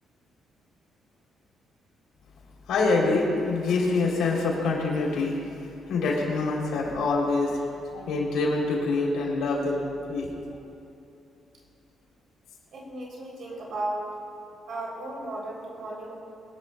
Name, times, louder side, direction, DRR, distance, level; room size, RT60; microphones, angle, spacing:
voice 1, 2.7-5.4 5.9-9.8 10.1-10.3, left 3 dB, 80° left, -2 dB, 3.1 m, -25 dB
voice 2, 12.7-14.1 14.7-16.2, right 1 dB, 60° right, -3 dB, 3.1 m, -35 dB
23.5 x 11.5 x 2.2 m, 2.8 s
cardioid pair, 90°, 0 cm